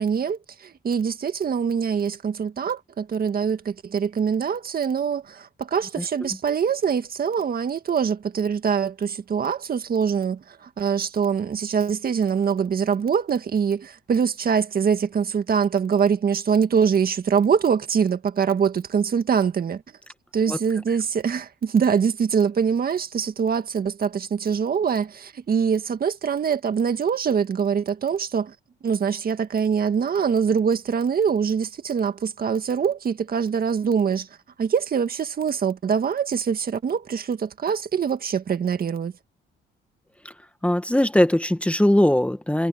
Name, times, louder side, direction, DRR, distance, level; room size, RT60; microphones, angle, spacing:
voice 1, 0.0-19.8 20.3-28.6 28.8-34.3 34.6-39.1, right 6 dB, 50° right, 1.9 m, -24 dB
voice 2, 40.6-42.7, left 1 dB, 5° left, 1.6 m, -20 dB
cardioid pair, 90°, 20 cm